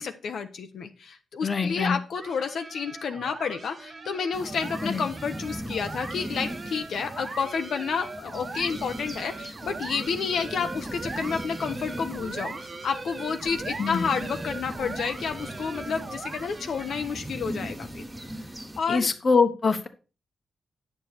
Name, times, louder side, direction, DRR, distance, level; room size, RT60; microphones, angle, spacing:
voice 1, 0.0-12.5 12.8-18.0 18.8-19.1, left 6 dB, 70° left, 6 dB, 0.8 m, -30 dB
voice 2, 1.4-2.0 4.8-5.0 13.8-14.1 18.9-19.9, left 4 dB, 35° left, 9 dB, 1.0 m, -24 dB
sound 1, 2.1-17.3, right 3 dB, 35° right, 1.2 m, -40 dB
sound 2, 4.3-18.8, right 1 dB, 10° right, 1.8 m, -39 dB
9.4 x 6.8 x 4.2 m, 0.34 s
wide cardioid pair, 130°, 0 cm